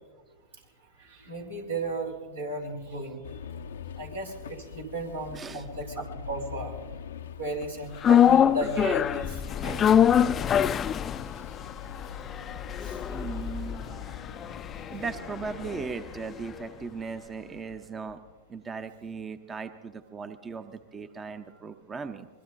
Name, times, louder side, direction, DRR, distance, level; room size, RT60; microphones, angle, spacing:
voice 1, 1.0-3.2 4.0-6.8 7.4-9.9 12.8-13.2 13.9-14.2, right 2 dB, 90° right, -1 dB, 3.5 m, -35 dB
sound 1, 3.2-18.4, left 7 dB, 75° left, 0.6 m, -44 dB
voice 2, 5.3-5.6 13.0-14.1 14.9-18.2 18.5-22.3, right 5 dB, 20° right, 10 dB, 0.7 m, -38 dB
sound 2, 8.0-16.3 16.6-16.7, left 9 dB, 30° left, 0.4 m, -25 dB
24.5 x 21.5 x 2.6 m, 1.4 s
hypercardioid pair, 100°, 0 cm